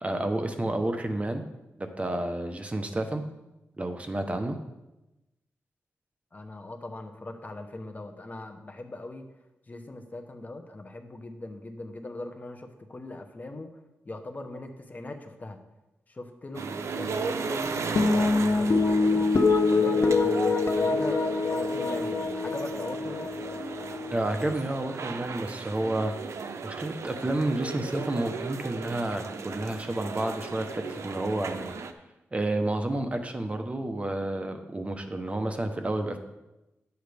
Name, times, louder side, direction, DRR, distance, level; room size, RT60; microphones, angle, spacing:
voice 1, 0.0-1.4 1.8-3.2 3.8-4.6 24.1-26.1 26.6-31.7 32.3-36.2, right 1 dB, 25° right, 6 dB, 0.9 m, -30 dB
voice 2, 6.3-9.2 9.7-13.7 14.0-15.6 16.1-19.3 19.7-23.4, left 2 dB, 35° left, 5 dB, 1.0 m, -40 dB
sound 1, 16.5-31.9, right 5 dB, 70° right, 0.7 m, -36 dB
sound 2, 18.0-24.5, left 3 dB, 55° left, 0.8 m, -25 dB
11.0 x 8.0 x 3.5 m, 0.98 s
cardioid pair, 80°, 5 cm